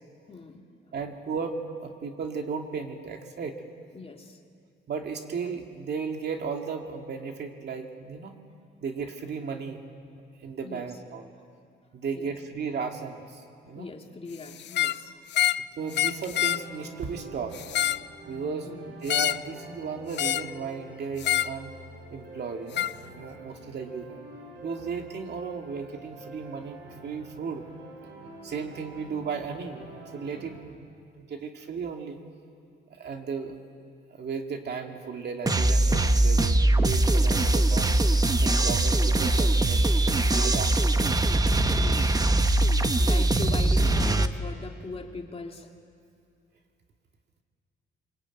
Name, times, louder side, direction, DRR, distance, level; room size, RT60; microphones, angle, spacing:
voice 1, 0.3-0.7 3.9-4.4 10.6-10.9 12.1-12.4 13.7-15.5 18.7-19.0 41.8-42.5 43.0-45.7, left 3 dB, 30° left, 2 dB, 2.7 m, -41 dB
voice 2, 0.9-3.6 4.9-8.4 8.8-9.8 10.4-11.3 11.9-13.9 15.8-17.6 18.3-18.7 19.0-21.7 22.1-24.1 24.6-27.6 28.4-32.2 32.9-33.6 34.1-40.9, right 5 dB, 55° right, 3 dB, 2.3 m, -35 dB
sound 1, 14.6-15.0 15.3-15.6 15.9-16.6 17.5-18.1 19.1-19.5 20.2-20.5 21.2-21.5 22.7-22.9, left 13 dB, 60° left, 0.5 m, -26 dB
sound 2, 15.8-30.6, right 2 dB, 90° right, 6.6 m, -46 dB
sound 3, 35.5-44.3, right 2 dB, 20° right, 1.1 m, -22 dB
24.0 x 21.5 x 9.1 m, 2.3 s
cardioid pair, 90°, 20 cm